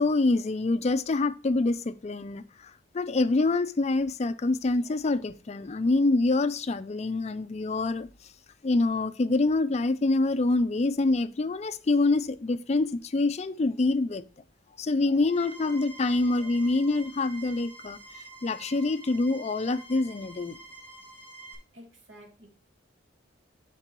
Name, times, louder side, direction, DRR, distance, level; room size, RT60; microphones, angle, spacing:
voice 1, 0.0-8.1 8.6-14.2 14.8-18.0 18.4-20.6, left 2 dB, 35° left, 0.4 m, -26 dB
sound 1, 15.2-21.5, right 2 dB, 10° right, 2.3 m, -47 dB
voice 2, 21.7-22.5, equal, 65° right, 1.8 m, -50 dB
10.5 x 4.5 x 3.0 m
head